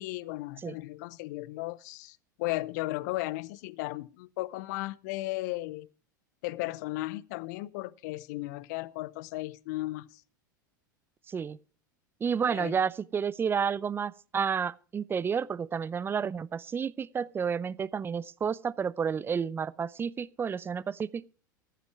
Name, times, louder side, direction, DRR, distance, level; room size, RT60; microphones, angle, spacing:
voice 1, 0.0-5.9 6.4-10.2 12.5-12.8, left 19 dB, 60° left, 0.7 m, -35 dB
voice 2, 11.3-11.6 12.2-21.3, right 6 dB, 20° right, 0.5 m, -31 dB
15.0 x 11.0 x 4.6 m
hypercardioid pair, 85°, 11 cm